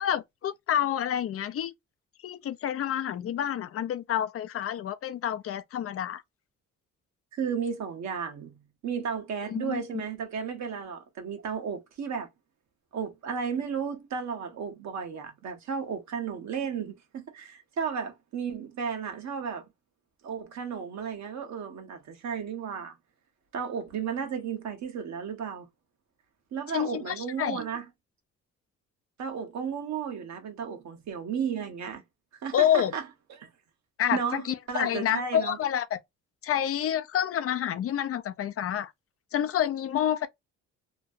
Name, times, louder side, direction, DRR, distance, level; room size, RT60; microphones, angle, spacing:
voice 1, 0.0-1.7 2.2-6.2 9.5-10.0 26.7-27.6 32.5-33.0 34.0-36.0 36.4-38.9 39.3-40.3, left 10 dB, 50° left, 0.5 m, -28 dB
voice 2, 7.3-12.3 12.9-19.7 20.2-23.0 23.5-25.6 26.5-27.8 29.2-32.0 32.4-33.0 33.3-33.5 34.1-35.6, right 6 dB, 65° right, 1.1 m, -34 dB
3.0 x 2.3 x 2.5 m
cardioid pair, 90°, 30 cm